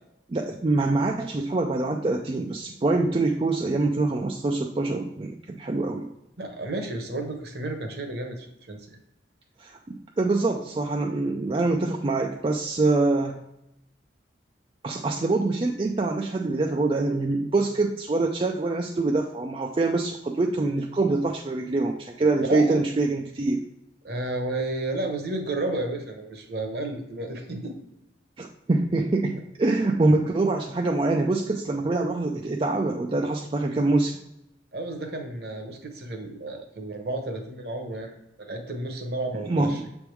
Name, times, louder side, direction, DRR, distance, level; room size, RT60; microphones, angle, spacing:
voice 1, 0.3-6.1 9.6-13.4 14.8-23.6 28.4-34.2 39.4-39.9, right 2 dB, 30° right, 1 dB, 0.3 m, -25 dB
voice 2, 6.4-9.0 22.5-22.8 24.0-27.7 34.7-39.9, right 2 dB, 55° right, 4 dB, 1.0 m, -32 dB
7.0 x 3.5 x 4.5 m, 0.86 s
head